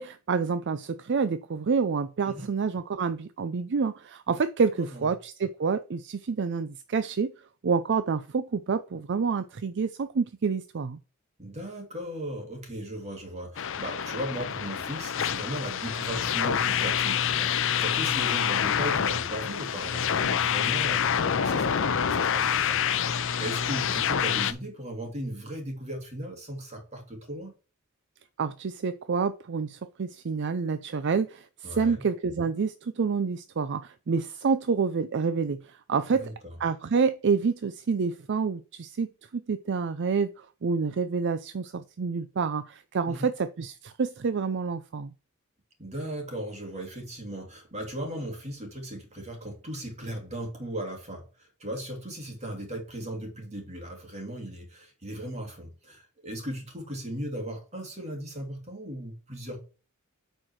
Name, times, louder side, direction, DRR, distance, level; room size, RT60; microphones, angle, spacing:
voice 1, 0.0-7.3 7.6-11.0 28.4-36.3 36.6-45.1, right 5 dB, 55° right, 0.5 m, -28 dB
voice 2, 4.8-5.1 11.4-27.5 31.6-32.0 36.1-36.5 43.0-43.3 45.8-59.6, right 1 dB, 30° right, 2.8 m, -37 dB
sound 1, 13.6-24.5, left 8 dB, 65° left, 0.6 m, -27 dB
8.7 x 4.5 x 4.7 m
head